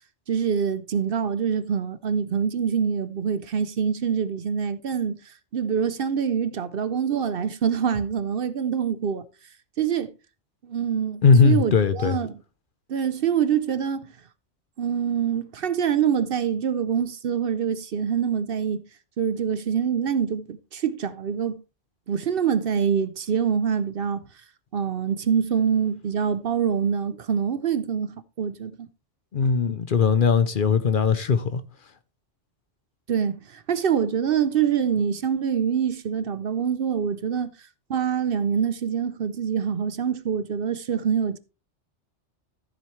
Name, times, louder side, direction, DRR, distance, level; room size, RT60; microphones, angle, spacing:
voice 1, 0.3-9.2 9.8-10.1 10.6-12.3 12.9-14.1 14.8-18.8 19.2-21.6 22.1-24.2 24.7-28.9 33.1-37.5 37.9-41.4, right 7 dB, 60° right, 0.8 m, -25 dB
voice 2, 11.2-12.2 29.3-31.6, left 5 dB, 55° left, 0.8 m, -19 dB
14.0 x 7.5 x 3.1 m
omnidirectional pair, 1.2 m